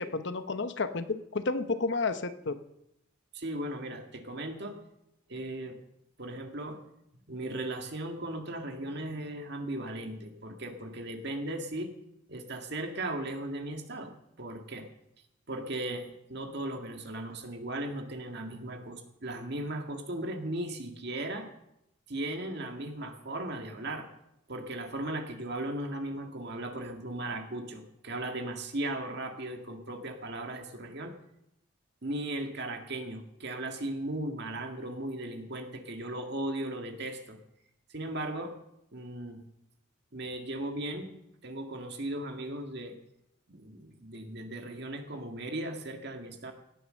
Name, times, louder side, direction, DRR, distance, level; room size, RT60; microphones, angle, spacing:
voice 1, 0.0-2.6, left 3 dB, 60° left, 11 dB, 0.9 m, -31 dB
voice 2, 3.3-4.8 5.3-5.8 6.2-6.8 7.3-11.9 12.3-14.9 15.5-21.5 22.1-24.1 24.5-31.1 32.0-37.4 37.9-38.5 38.9-39.4 40.1-41.1 41.4-42.9 43.5-46.5, right 1 dB, 55° right, 4 dB, 1.9 m, -37 dB
17.5 x 9.6 x 6.4 m, 0.82 s
head